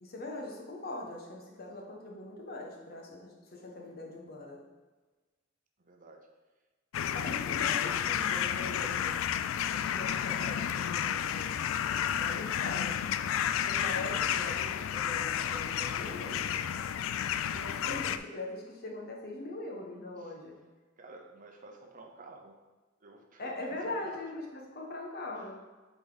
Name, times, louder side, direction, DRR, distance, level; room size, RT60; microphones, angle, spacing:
voice 1, 0.0-4.6 7.1-9.2 9.8-11.5 12.2-13.0 13.6-16.5 17.5-20.6 23.4-25.6, left 2 dB, 50° left, -1 dB, 1.2 m, -41 dB
voice 2, 5.8-6.3 7.0-7.5 20.2-20.3 21.0-22.6 23.0-24.2 25.3-25.5, right 2 dB, 45° right, 3 dB, 0.8 m, -52 dB
sound 1, 6.9-18.2, left 9 dB, 80° left, 0.3 m, -31 dB
7.9 x 4.1 x 4.0 m, 1.3 s
head